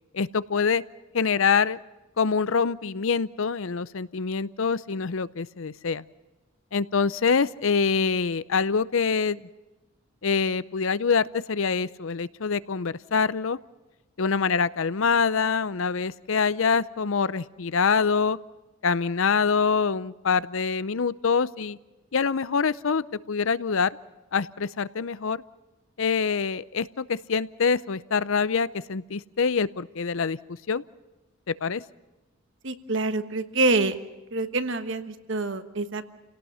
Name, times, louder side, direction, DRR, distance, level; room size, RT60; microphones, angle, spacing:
voice 1, 0.1-0.8 1.1-1.8 2.2-6.0 6.7-9.4 10.2-13.6 14.2-18.4 18.8-21.8 22.1-23.9 24.3-25.4 26.0-30.4 30.7-30.8 31.5-31.8, left 5 dB, 70° left, 17 dB, 0.6 m, -25 dB
voice 2, 32.6-34.0 34.3-36.1, right 3 dB, 60° right, 10 dB, 1.3 m, -26 dB
29.5 x 18.0 x 5.6 m, 1.1 s
head